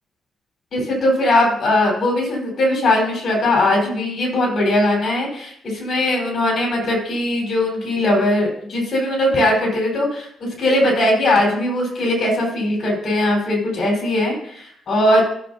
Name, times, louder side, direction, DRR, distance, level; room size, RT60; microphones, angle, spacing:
voice 1, 0.7-10.3 10.6-15.2, left 1 dB, 55° left, -1 dB, 4.7 m, -19 dB
14.0 x 7.2 x 2.9 m, 0.66 s
cardioid pair, 110°, 0 cm